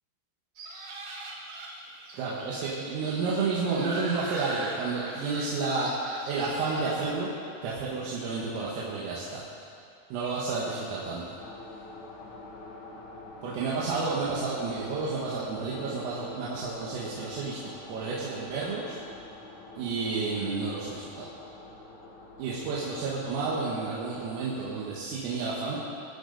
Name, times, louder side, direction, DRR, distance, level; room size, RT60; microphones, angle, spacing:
sound 1, 0.6-6.8, right 2 dB, 60° right, 2.3 m, -40 dB
voice 1, 2.1-5.9 6.3-7.3 7.6-9.4 10.1-11.4 13.4-19.0 19.8-21.3 22.4-25.8, right 4 dB, 80° right, -7 dB, 4.3 m, -31 dB
sound 2, 11.4-24.5, left 3 dB, 70° left, 4.0 m, -46 dB
25.0 x 10.5 x 4.2 m, 2.6 s
omnidirectional pair, 5.9 m